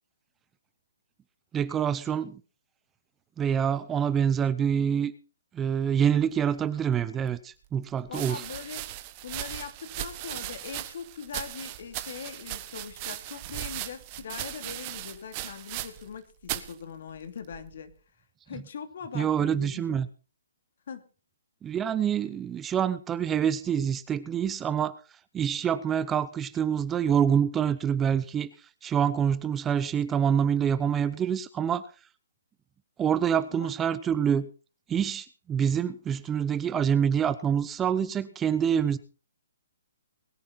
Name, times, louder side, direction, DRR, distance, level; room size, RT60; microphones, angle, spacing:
voice 1, 1.5-2.4 3.4-5.1 5.5-8.4 19.1-20.1 21.6-25.0 25.3-28.5 28.8-31.9 33.0-34.5 34.9-39.0, right 8 dB, 15° right, 15 dB, 0.6 m, -26 dB
sound 1, 7.0-7.1 8.0-16.2 16.4-16.7 17.5-17.9, right 16 dB, 30° right, 1.4 m, -38 dB
voice 2, 8.1-8.9 9.2-17.9 18.5-20.0 20.9-21.0 33.5-33.7, left 7 dB, 60° left, 8 dB, 2.8 m, -41 dB
21.5 x 10.0 x 4.1 m, 0.34 s
hypercardioid pair, 155°, 0 cm